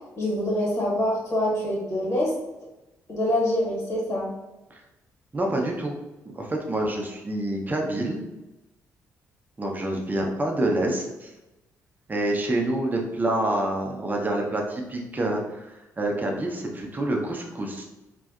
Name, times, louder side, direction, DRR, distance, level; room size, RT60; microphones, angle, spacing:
voice 1, 0.2-2.3 3.1-4.3, left 1 dB, 40° left, -5 dB, 1.1 m, -25 dB
voice 2, 5.3-5.9 6.3-8.2 9.6-11.3 12.1-17.8, right 1 dB, 20° right, 0 dB, 0.6 m, -27 dB
2.5 x 2.1 x 2.4 m, 1.0 s
figure-of-eight pair, 40°, 8 cm